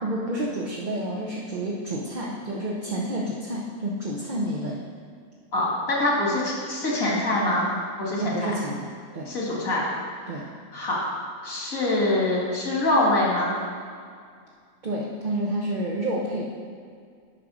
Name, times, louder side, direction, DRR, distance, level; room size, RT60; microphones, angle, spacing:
voice 1, 0.0-4.8 8.2-9.3 10.3-10.5 14.8-16.5, right 1 dB, 40° right, -3 dB, 0.8 m, -29 dB
voice 2, 5.5-7.7 8.0-8.5 9.3-9.8 10.7-11.0 11.4-13.5, left 1 dB, 85° left, -4 dB, 2.3 m, -24 dB
10.0 x 3.8 x 6.1 m, 2.1 s
omnidirectional pair, 1.4 m